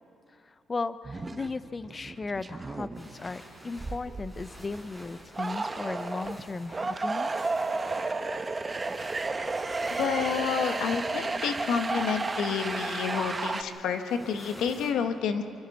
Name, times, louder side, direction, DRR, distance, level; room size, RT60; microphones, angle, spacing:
voice 1, 0.5-7.3, left 3 dB, 30° left, 14 dB, 0.6 m, -36 dB
sound 1, 1.0-1.5 1.8-3.4 3.8-4.7 5.3-13.6, right 3 dB, 25° right, 1.1 m, -32 dB
sound 2, 2.9-14.9, equal, 10° left, 5.7 m, -49 dB
voice 2, 10.0-15.4, left 7 dB, 80° left, 7 dB, 1.3 m, -29 dB
26.5 x 24.5 x 4.2 m, 2.5 s
cardioid pair, 90°, 0 cm